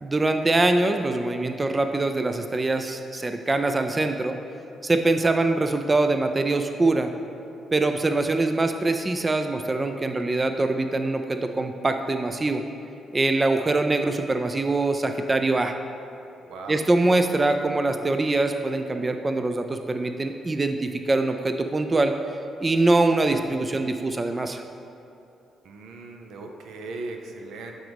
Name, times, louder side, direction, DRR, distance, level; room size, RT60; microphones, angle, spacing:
voice 1, 0.0-4.4 4.8-7.1 7.7-12.6 13.1-15.7 16.7-22.1 22.6-24.6, right 2 dB, 30° right, 7 dB, 0.4 m, -23 dB
voice 2, 16.5-16.8 25.6-27.7, right 3 dB, 75° right, 3 dB, 0.5 m, -38 dB
8.9 x 3.9 x 3.5 m, 2.7 s
supercardioid pair, 60°, 0 cm